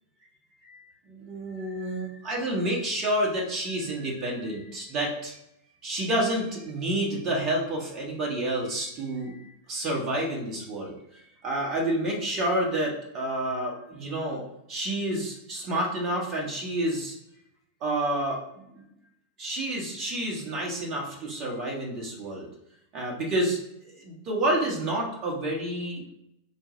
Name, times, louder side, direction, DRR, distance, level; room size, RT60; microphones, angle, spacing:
voice 1, 0.6-5.4 5.8-10.9 11.4-14.4 14.7-17.2 17.8-18.8 19.4-22.5 22.9-23.6 23.9-26.0, right 1 dB, 35° right, -2 dB, 1.3 m, -29 dB
3.8 x 2.3 x 3.9 m, 0.81 s
figure-of-eight pair, 90°, 0 cm